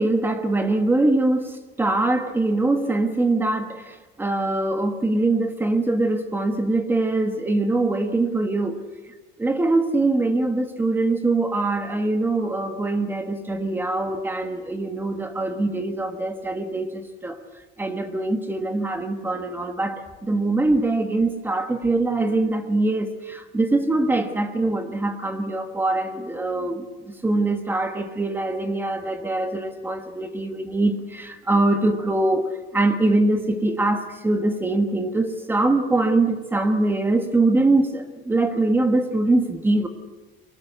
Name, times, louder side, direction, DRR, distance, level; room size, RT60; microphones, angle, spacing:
voice 1, 0.0-8.8 9.4-17.4 17.8-39.9, right 2 dB, 10° right, 7 dB, 1.3 m, -23 dB
23.5 x 18.5 x 8.1 m, 1.3 s
cardioid pair, 175°, 20 cm